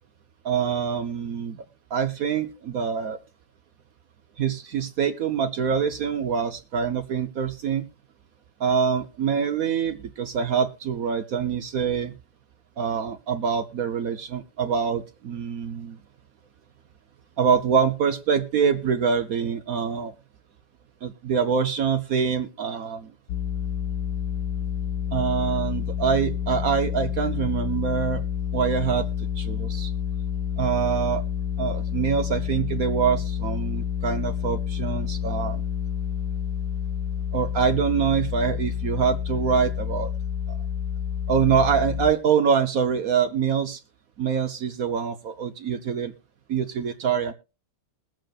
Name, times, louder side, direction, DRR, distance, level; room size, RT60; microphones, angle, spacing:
voice 1, 0.4-1.6 1.9-3.2 4.4-7.8 8.6-12.1 12.8-16.0 17.4-20.1 21.0-23.1 25.1-28.2 28.5-29.1 29.4-29.9 30.6-31.2 31.6-35.6 37.3-40.1 40.5-40.6 41.3-43.8 44.2-46.1 46.5-47.3, right 7 dB, 60° right, 9 dB, 1.0 m, -25 dB
sound 1, 23.3-42.1, left 8 dB, 70° left, 1.3 m, -29 dB
21.5 x 7.7 x 2.4 m, 0.31 s
omnidirectional pair, 2.1 m